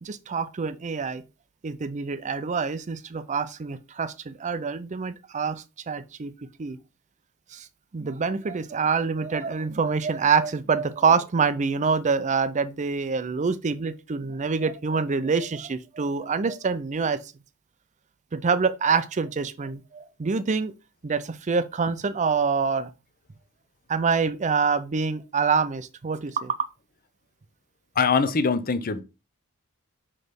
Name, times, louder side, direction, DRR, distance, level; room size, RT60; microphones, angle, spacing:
voice 1, 0.0-1.2 1.6-6.3 6.6-6.8 7.5-7.7 7.9-17.2 18.3-20.7 21.0-22.9 23.9-26.6, right 5 dB, 35° right, 0.5 m, -26 dB
voice 2, 28.0-29.0, left 5 dB, 40° left, 0.7 m, -22 dB
6.1 x 3.3 x 5.2 m
head